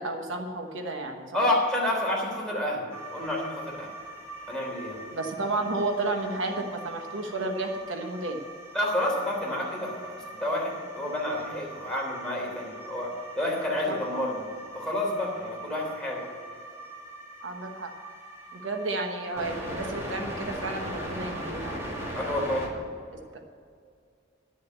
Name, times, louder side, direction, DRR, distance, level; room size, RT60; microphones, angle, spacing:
voice 1, 0.0-1.4 5.1-8.4 13.9-14.0 17.4-17.9 18.5-22.5 23.1-23.4, right 2 dB, 75° right, 4 dB, 1.2 m, -32 dB
voice 2, 1.3-2.9 3.1-3.9 4.5-5.0 8.7-14.4 14.7-16.2 22.1-22.6, left 1 dB, 5° left, -4 dB, 3.3 m, -29 dB
sound 1, 2.9-22.7, right 1 dB, 15° right, 2.3 m, -41 dB
11.5 x 6.6 x 8.1 m, 2.2 s
head